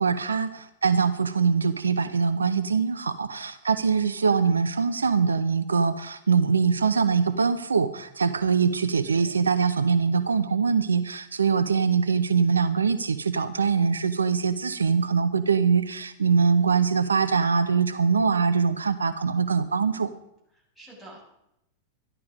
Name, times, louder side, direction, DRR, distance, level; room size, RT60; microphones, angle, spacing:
voice 1, 0.0-20.1, right 5 dB, 80° right, 12 dB, 0.6 m, -23 dB
voice 2, 9.0-9.4 20.7-21.2, right 1 dB, ahead, -4 dB, 6.5 m, -48 dB
13.0 x 11.5 x 5.1 m, 0.81 s
figure-of-eight pair, 90°, 0 cm